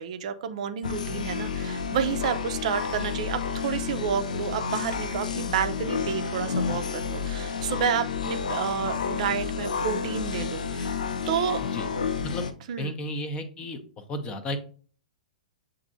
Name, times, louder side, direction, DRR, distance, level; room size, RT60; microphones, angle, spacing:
voice 1, 0.0-11.6 12.7-13.0, right 8 dB, 55° right, 9 dB, 0.4 m, -30 dB
sound 1, 0.8-12.5, left 6 dB, 70° left, 0.4 m, -30 dB
voice 2, 12.8-13.8 14.1-14.6, left 1 dB, 25° left, 9 dB, 0.6 m, -33 dB
6.9 x 2.6 x 2.6 m, 0.42 s
figure-of-eight pair, 110°, 4 cm